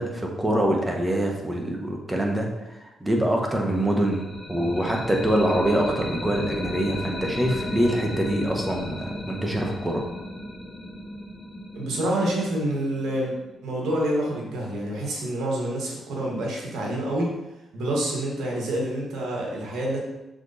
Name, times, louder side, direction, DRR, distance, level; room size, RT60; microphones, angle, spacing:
voice 1, 0.0-10.0, right 1 dB, 15° right, 0 dB, 1.4 m, -25 dB
sound 1, 3.7-13.5, left 1 dB, 20° left, 1.4 m, -35 dB
voice 2, 11.7-13.3 13.6-17.3 17.7-20.0, right 1 dB, 80° right, -2 dB, 2.1 m, -27 dB
6.5 x 4.9 x 4.2 m, 1.0 s
cardioid pair, 85°, 0 cm